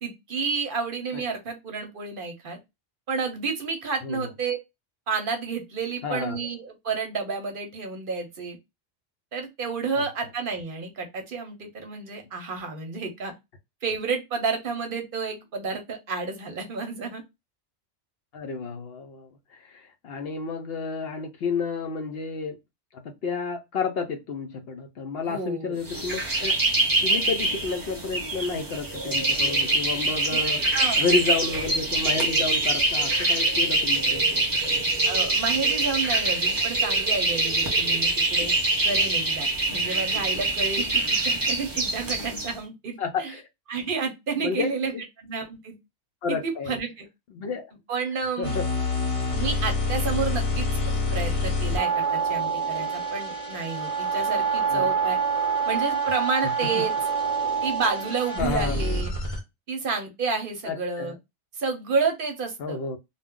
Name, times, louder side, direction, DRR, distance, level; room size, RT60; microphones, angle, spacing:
voice 1, 0.0-2.6 3.1-4.6 5.1-8.6 9.3-13.3 13.8-17.2 25.2-25.8 30.3-30.4 30.7-31.1 35.0-38.6 38.8-43.3 43.7-44.9 45.2-45.8 46.3-47.1 47.9-48.6 49.4-55.2 55.7-56.9 57.6-59.1 59.7-61.1 61.5-62.8, right 4 dB, 55° right, 0.8 m, -30 dB
voice 2, 6.0-6.4 10.0-10.1 18.3-22.6 23.2-26.5 27.0-34.8 43.0-43.5 44.4-45.0 46.2-46.8 47.3-47.7 48.4-48.6 54.7-54.9 56.8-56.9 58.3-58.8 60.6-61.2 62.6-63.0, left 5 dB, 65° left, 0.7 m, -31 dB
sound 1, 25.9-42.5, right 2 dB, 25° right, 0.6 m, -24 dB
sound 2, 48.4-59.4, right 2 dB, 30° left, 0.8 m, -26 dB
2.2 x 2.1 x 3.6 m
omnidirectional pair, 1.2 m